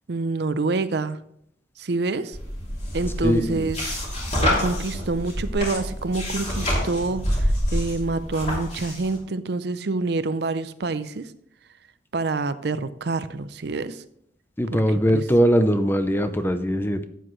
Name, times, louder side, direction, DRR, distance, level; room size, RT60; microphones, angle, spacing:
voice 1, 0.1-1.2 1.8-2.4 2.9-4.0 4.4-11.3 12.1-14.0 14.7-14.8 15.1-15.2, right 3 dB, 65° right, 13 dB, 0.5 m, -27 dB
sound 1, 2.3-9.1, equal, 35° left, 3.1 m, -27 dB
voice 2, 3.2-3.7 14.6-17.0, equal, 10° left, 9 dB, 0.6 m, -21 dB
12.0 x 8.3 x 3.2 m, 0.72 s
head